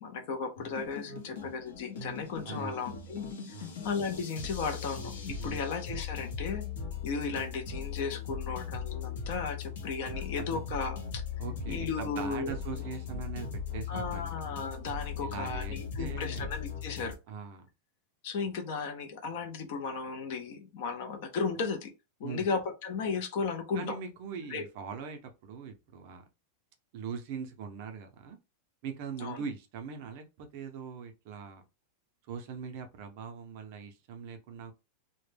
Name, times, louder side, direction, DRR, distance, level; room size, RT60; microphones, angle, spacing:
voice 1, 0.0-3.2 3.6-6.7 7.0-11.2 11.7-12.8 13.9-17.2 18.2-21.9 22.2-24.0 24.5-24.6 29.2-29.4, left 5 dB, 45° left, 0.4 m, -35 dB
sound 1, 0.6-17.1, left 6 dB, 80° left, 0.7 m, -39 dB
voice 2, 2.5-2.9 3.5-3.8 5.4-5.6 10.1-10.6 11.4-14.5 15.2-16.5 17.3-17.7 22.2-22.5 23.8-26.2 26.9-28.4 28.8-31.6 32.3-34.7, right 6 dB, 40° right, 0.4 m, -41 dB
2.1 x 2.0 x 3.2 m
supercardioid pair, 175°, 0 cm